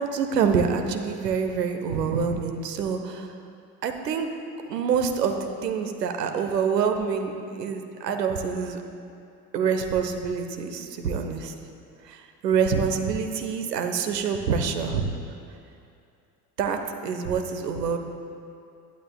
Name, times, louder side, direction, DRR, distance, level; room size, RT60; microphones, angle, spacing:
voice 1, 0.0-3.3 3.8-4.3 4.6-8.8 9.5-11.5 12.1-15.1 16.6-16.8 17.0-18.0, right 6 dB, 75° right, 6 dB, 1.1 m, -26 dB
20.5 x 12.0 x 2.4 m, 2.6 s
figure-of-eight pair, 70°, 49 cm